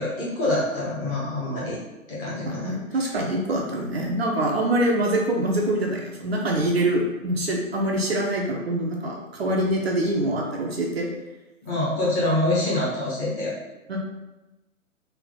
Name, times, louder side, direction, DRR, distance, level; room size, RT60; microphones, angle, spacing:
voice 1, 0.0-1.8 2.1-3.1 11.6-13.5, left 1 dB, 15° left, -7 dB, 1.0 m, -26 dB
voice 2, 2.4-11.1 13.9-14.0, right 1 dB, 50° right, 0 dB, 0.7 m, -25 dB
3.4 x 2.8 x 3.9 m, 1.0 s
figure-of-eight pair, 130°, 41 cm